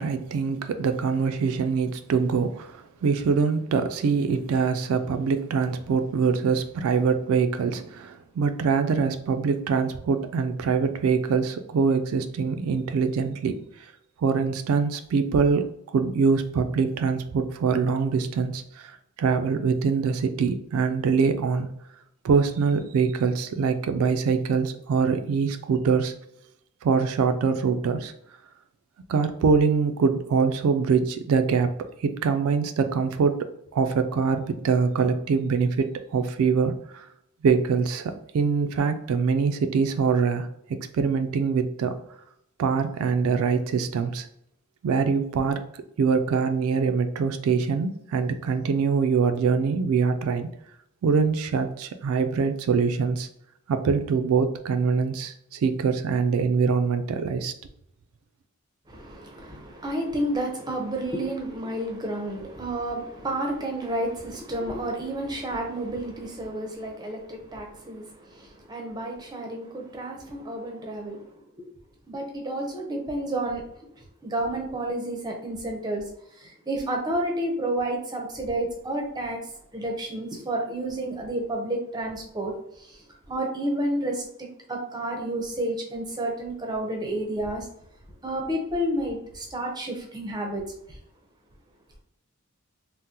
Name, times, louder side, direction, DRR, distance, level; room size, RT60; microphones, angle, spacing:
voice 1, 0.0-13.6 14.2-18.9 19.2-21.7 22.2-26.1 26.8-28.1 29.1-31.7 32.0-33.5 33.7-37.1 37.4-42.0 42.6-44.3 44.8-45.6 46.0-50.5 51.0-53.3 53.7-57.5, right 5 dB, 75° right, 9 dB, 0.3 m, -24 dB
voice 2, 58.9-71.3 71.6-71.7 72.1-73.6 74.0-76.1 76.4-79.4 79.7-87.7 88.2-90.6 90.9-91.0, right 1 dB, 20° right, 1 dB, 0.5 m, -30 dB
3.6 x 2.0 x 2.8 m, 0.73 s
head